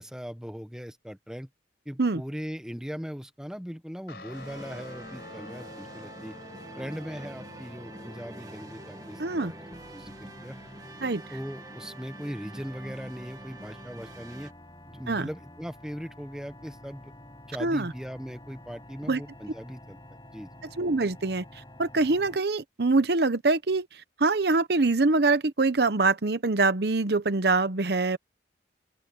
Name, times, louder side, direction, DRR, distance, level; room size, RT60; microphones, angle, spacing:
voice 1, 0.0-1.5 1.8-6.4 6.8-9.6 9.9-10.6 11.3-14.5 14.9-17.1 17.5-20.0 20.3-20.5, equal, 5° right, 1.1 m, -39 dB
Guitar, 4.1-12.9, left 2 dB, 60° left, 5.1 m, -49 dB
sound 1, 4.3-14.5, right 1 dB, 20° right, 2.3 m, -45 dB
sound 2, 4.6-22.4, left 1 dB, 25° left, 5.6 m, -51 dB
voice 2, 9.2-9.5 11.0-11.2 15.1-15.3 17.6-17.9 19.1-19.2 20.8-21.4 21.8-23.9 24.2-28.2, right 3 dB, 60° right, 0.9 m, -24 dB
head